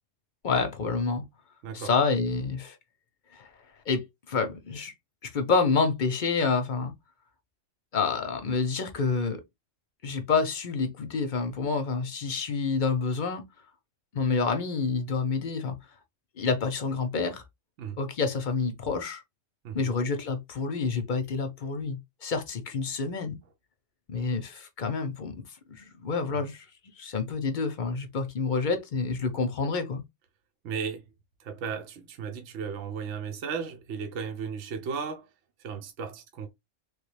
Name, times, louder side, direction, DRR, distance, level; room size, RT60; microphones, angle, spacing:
voice 1, 0.4-1.2 1.7-2.8 3.3-3.5 3.9-4.9 5.2-6.9 7.9-9.4 10.0-13.5 14.1-15.8 16.4-17.4 18.0-19.2 19.7-23.4 24.1-25.4 25.7-26.7 27.0-30.0, left 4 dB, 45° left, 0.7 m, -28 dB
voice 2, 30.6-31.0 31.4-35.3 35.6-36.5, right 6 dB, 70° right, 0.9 m, -35 dB
3.3 x 2.3 x 3.2 m
omnidirectional pair, 1.3 m